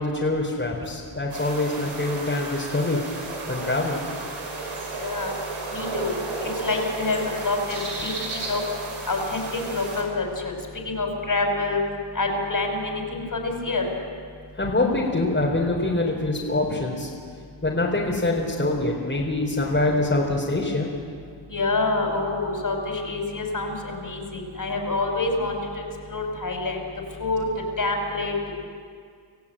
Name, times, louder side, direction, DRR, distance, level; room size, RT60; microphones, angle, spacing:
voice 1, 0.0-3.0 3.5-4.0 14.6-17.1 17.6-20.9, left 2 dB, 20° left, -3 dB, 4.5 m, -24 dB
sound 1, 1.3-10.0, right 3 dB, 65° right, 5.6 m, -33 dB
voice 2, 5.0-5.3 5.7-8.6 9.1-10.5 10.9-11.8 12.1-13.9 21.5-25.8 26.1-26.8 27.2-27.5 27.8-28.3, left 3 dB, 40° left, 2 dB, 5.4 m, -27 dB
26.5 x 15.5 x 8.9 m, 2.1 s
cardioid pair, 80°, 50 cm